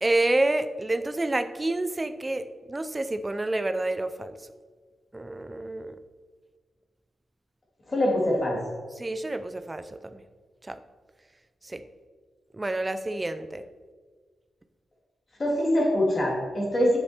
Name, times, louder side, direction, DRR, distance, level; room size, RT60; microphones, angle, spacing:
voice 1, 0.0-4.4 5.1-6.0 9.0-10.2 10.6-10.8 11.6-11.8 12.5-13.6, right 2 dB, 20° right, 12 dB, 0.5 m, -28 dB
voice 2, 7.9-8.6 15.4-17.0, left 1 dB, 35° left, -2 dB, 2.6 m, -23 dB
9.9 x 7.7 x 4.4 m, 1.5 s
wide cardioid pair, 120°, 0 cm